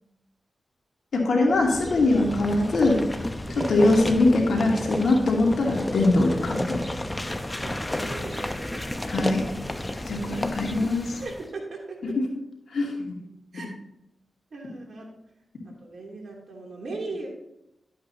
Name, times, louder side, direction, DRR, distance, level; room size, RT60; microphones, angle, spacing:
voice 1, 1.1-3.0 3.5-6.8 9.1-9.4 10.1-11.2 12.0-12.1 12.7-13.2 13.5-13.7, left 2 dB, 75° left, -1 dB, 2.6 m, -22 dB
sound 1, 1.5-11.5, left 1 dB, 20° left, 0.9 m, -32 dB
voice 2, 3.4-3.8 7.6-9.3 9.9-10.2 11.2-12.2 13.5-13.7 14.5-15.1 15.8-17.3, right 3 dB, 65° right, 0 dB, 2.9 m, -38 dB
12.0 x 8.5 x 2.8 m, 0.85 s
cardioid pair, 45°, 0 cm